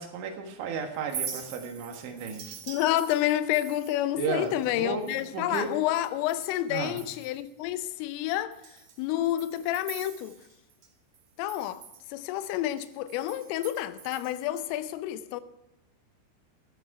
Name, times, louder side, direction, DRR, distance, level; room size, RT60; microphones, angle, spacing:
voice 1, 0.0-2.6 4.2-5.7 6.7-7.0, right 5 dB, 70° right, 3.7 m, -34 dB
Chink clink, 0.9-6.6 6.9-7.5 7.9-8.0 8.5-10.9 11.1-14.6, right 8 dB, 90° right, 1.5 m, -44 dB
voice 2, 2.7-8.6 9.0-10.4 11.4-15.4, left 13 dB, 90° left, 3.4 m, -29 dB
13.0 x 12.0 x 4.8 m
omnidirectional pair, 5.7 m